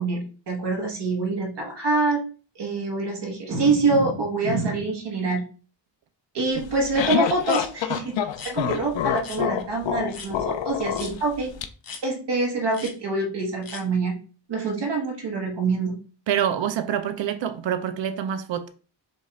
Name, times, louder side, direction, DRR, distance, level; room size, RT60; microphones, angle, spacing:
voice 1, 0.0-2.2 2.5-5.4 6.3-8.2 8.4-11.6 12.0-14.2 14.5-15.9, right 3 dB, 65° right, 1.4 m, -25 dB
sound 1, 6.6-11.7, left 9 dB, 80° left, 0.5 m, -27 dB
sound 2, 7.4-7.6 8.3-8.5 9.2-9.4 10.1-10.3 10.9-11.1 11.8-12.0 12.7-12.9 13.6-13.8, left 5 dB, 50° left, 0.8 m, -39 dB
voice 2, 16.3-18.7, right 9 dB, 80° right, 0.6 m, -26 dB
5.4 x 2.4 x 3.2 m
wide cardioid pair, 105°, 44 cm